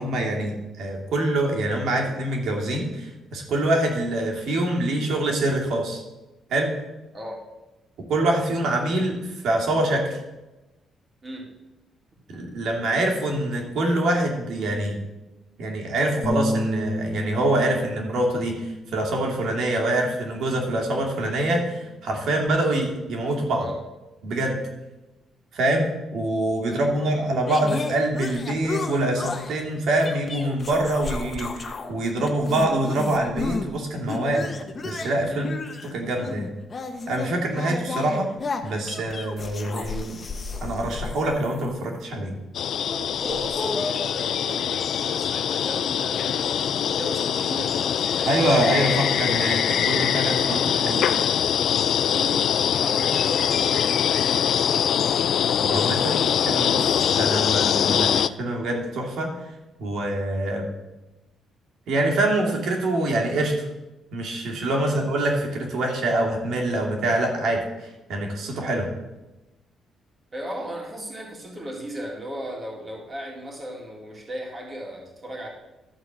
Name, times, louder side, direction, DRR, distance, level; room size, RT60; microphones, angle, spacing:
voice 1, 0.0-6.0 6.5-6.7 8.1-10.1 12.3-15.0 15.6-23.7 24.2-24.6 25.5-34.5 34.8-35.5 35.8-36.5 37.1-38.3 38.6-40.2 40.6-42.3 48.2-51.1 55.6-59.3 59.8-60.7 61.9-63.7 64.1-68.9, right 1 dB, 70° right, 0 dB, 2.7 m, -25 dB
Bass guitar, 16.2-20.7 21.1-22.5, equal, 15° left, 1.6 m, -33 dB
voice 2, 26.7-27.3 35.3-35.5 43.2-48.5 52.1-52.4 52.8-53.9 64.8-65.0 70.3-75.5, equal, 30° right, -1 dB, 3.3 m, -36 dB
sound 1, 27.5-29.6 30.0-31.9 32.2-33.7 34.1-42.0 42.8-44.2, left 3 dB, 35° left, 1.2 m, -33 dB
sound 2, 42.5-58.3, left 9 dB, 65° left, 0.3 m, -23 dB
13.0 x 4.6 x 7.5 m, 1.1 s
cardioid pair, 90°, 0 cm